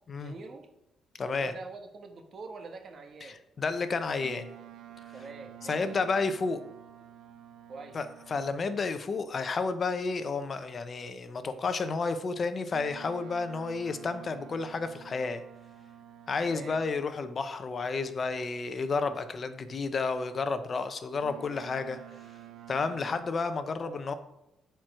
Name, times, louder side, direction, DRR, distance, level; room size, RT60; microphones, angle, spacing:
voice 1, 0.1-0.7 1.2-3.4 5.1-5.8 7.7-8.0 16.4-16.8 23.8-24.0, right 3 dB, 50° right, 6 dB, 1.4 m, -44 dB
voice 2, 1.2-1.5 3.2-4.5 5.6-6.6 7.9-15.4 16.3-22.0 22.7-24.1, left 4 dB, 45° left, 10 dB, 0.8 m, -31 dB
Boat Water vehicle, 4.2-8.7 12.7-17.2 21.2-23.2, right 11 dB, 75° right, 0.8 m, -50 dB
9.1 x 4.6 x 6.3 m, 0.87 s
cardioid pair, 90°, 0 cm